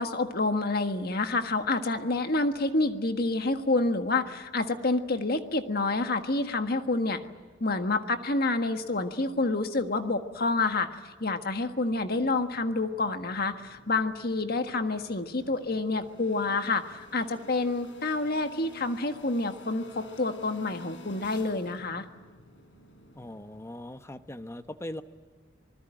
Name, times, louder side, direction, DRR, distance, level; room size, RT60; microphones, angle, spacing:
voice 1, 0.0-7.2 7.6-10.9 11.2-22.0, left 3 dB, 55° left, 8 dB, 1.6 m, -28 dB
sound 1, 12.2-24.0, left 1 dB, 75° left, 3.7 m, -52 dB
voice 2, 23.2-25.0, left 1 dB, 15° left, 10 dB, 1.0 m, -40 dB
25.5 x 20.5 x 9.0 m, 1.5 s
head